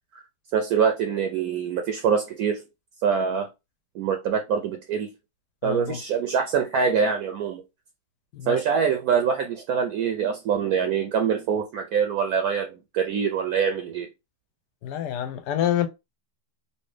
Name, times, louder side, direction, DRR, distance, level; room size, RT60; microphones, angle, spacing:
voice 1, 0.5-2.6 3.0-3.5 4.0-5.1 5.6-7.6 8.5-14.1, right 6 dB, 70° right, 0.9 m, -24 dB
voice 2, 5.6-6.0 8.3-8.6 14.8-15.9, left 10 dB, 75° left, 1.2 m, -27 dB
3.1 x 2.8 x 3.2 m
omnidirectional pair, 1.8 m